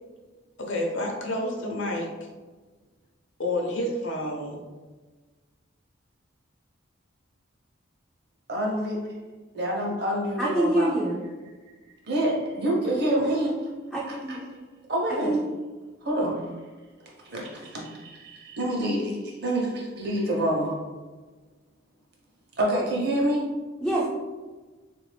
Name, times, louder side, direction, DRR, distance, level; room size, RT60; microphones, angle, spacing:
voice 1, 0.6-2.1 3.4-4.6, left 1 dB, 65° left, 0 dB, 0.7 m, -29 dB
voice 2, 8.5-9.2 9.5-10.9 12.1-13.7 14.1-14.6 14.9-15.3 16.0-16.4 17.2-20.8 22.6-23.5, right 1 dB, 50° right, -2 dB, 0.9 m, -27 dB
voice 3, 10.4-11.2 13.9-14.4 15.2-15.4 23.8-24.1, right 1 dB, ahead, -8 dB, 0.4 m, -25 dB
3.5 x 2.5 x 3.3 m, 1.3 s
head